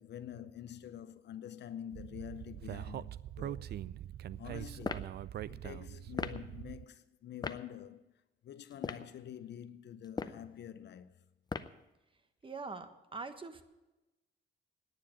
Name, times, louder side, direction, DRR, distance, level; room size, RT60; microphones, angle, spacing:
voice 1, 0.0-3.6 4.4-5.0 5.5-8.0 8.4-11.1, left 10 dB, 60° left, 0.7 m, -47 dB
Speech, 1.9-6.8, right 11 dB, 55° right, 0.4 m, -43 dB
sound 1, 4.8-5.1 6.1-6.4 7.4-7.6 8.7-9.1 10.0-10.4 11.5-11.8, left 4 dB, 20° left, 0.6 m, -37 dB
voice 2, 12.4-13.6, right 4 dB, 25° right, 1.2 m, -43 dB
10.0 x 9.1 x 8.7 m
cardioid pair, 90°, 20 cm